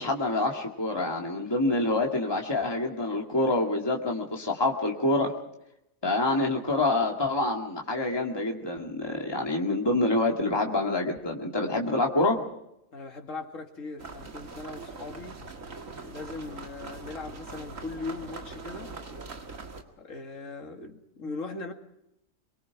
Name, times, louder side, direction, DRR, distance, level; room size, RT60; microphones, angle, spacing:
voice 1, 0.0-5.3 6.0-12.4, left 2 dB, 20° left, 0 dB, 2.2 m, -26 dB
voice 2, 12.9-15.4 16.0-18.9 20.0-21.7, left 3 dB, 70° left, 3 dB, 2.5 m, -39 dB
sound 1, 14.0-19.8, right 3 dB, 70° right, 2.4 m, -42 dB
24.5 x 23.0 x 4.8 m, 0.83 s
omnidirectional pair, 1.4 m